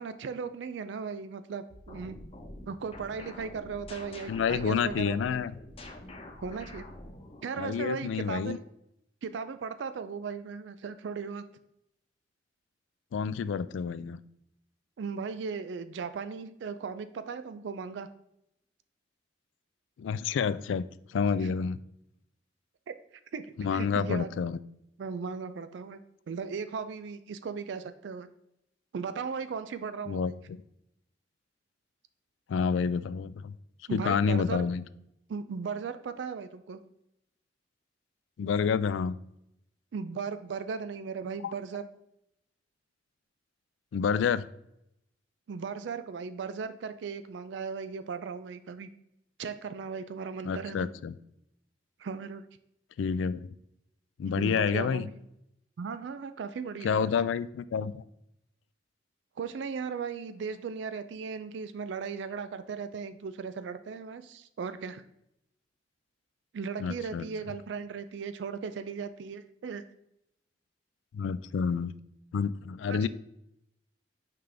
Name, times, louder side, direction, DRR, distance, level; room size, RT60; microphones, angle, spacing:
voice 1, 0.0-2.2 2.7-5.4 6.4-6.9 7.4-8.6 9.2-11.4 15.0-18.1 21.4-21.5 22.9-23.0 23.3-24.3 25.0-26.0 26.3-28.3 28.9-30.2 33.9-34.6 35.3-36.8 39.9-41.9 45.5-48.9 49.4-50.9 52.0-52.4 54.3-55.2 55.8-57.0 59.4-65.0 66.5-69.8 72.9-73.0, right 5 dB, 70° right, 12 dB, 0.4 m, -37 dB
sound 1, 1.7-7.9, left 1 dB, 30° left, 0.9 m, -47 dB
voice 2, 4.3-5.5 7.6-8.6 13.1-14.2 20.0-20.8 21.1-21.8 23.6-24.6 30.1-30.6 32.5-33.5 33.9-34.8 38.4-39.2 41.4-41.5 43.9-44.5 50.4-51.1 53.0-53.5 54.2-55.1 56.8-58.0 66.8-67.3 71.1-71.9 72.3-73.1, left 6 dB, 85° left, 16 dB, 0.3 m, -29 dB
5.7 x 5.0 x 3.3 m, 0.80 s
head